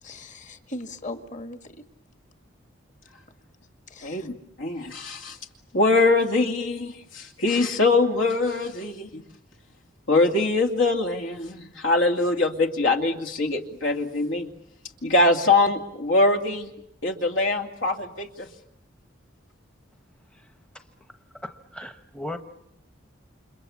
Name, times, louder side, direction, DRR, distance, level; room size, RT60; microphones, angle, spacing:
voice 1, 0.0-1.8 3.9-4.3, left 2 dB, 40° left, 7 dB, 1.8 m, -39 dB
voice 2, 4.0-4.3 4.6-5.4 5.7-9.2 10.1-14.5 15.0-16.7 17.0-18.5, left 2 dB, 75° left, 3 dB, 2.5 m, -23 dB
voice 3, 21.4-22.4, left 1 dB, 5° left, 7 dB, 1.0 m, -37 dB
29.5 x 27.0 x 7.2 m, 0.80 s
head